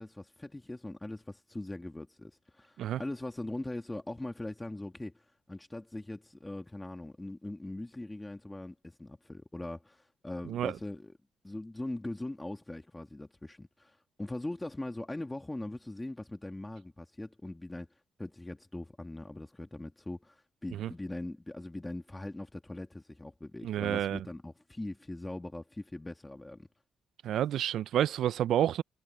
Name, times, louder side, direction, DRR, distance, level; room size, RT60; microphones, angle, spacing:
voice 1, 0.0-11.1 11.4-17.9 18.2-26.7, left 1 dB, 10° left, 2.0 m, -41 dB
voice 2, 23.6-24.2 27.2-28.8, right 11 dB, 75° right, 0.4 m, -29 dB
cardioid pair, 90°, 0 cm